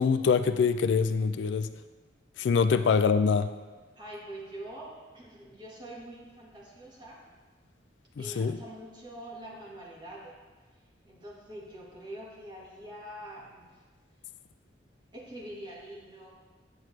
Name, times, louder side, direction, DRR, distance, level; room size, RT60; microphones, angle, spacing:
voice 1, 0.0-1.7 2.4-3.5 8.2-8.6, left 5 dB, 75° left, 11 dB, 0.3 m, -24 dB
voice 2, 3.9-7.2 8.2-10.4 11.0-13.8 15.1-16.3, right 1 dB, 25° right, -4 dB, 1.7 m, -44 dB
9.1 x 7.3 x 3.2 m, 1.3 s
head